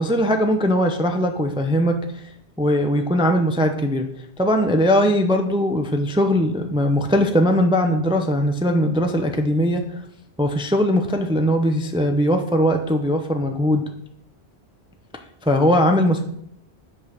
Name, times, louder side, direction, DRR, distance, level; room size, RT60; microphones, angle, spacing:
voice 1, 0.0-2.2 2.6-4.1 4.4-10.0 10.4-13.9 15.4-16.2, equal, 5° right, 5 dB, 0.5 m, -20 dB
6.3 x 5.5 x 5.9 m, 0.71 s
omnidirectional pair, 1.1 m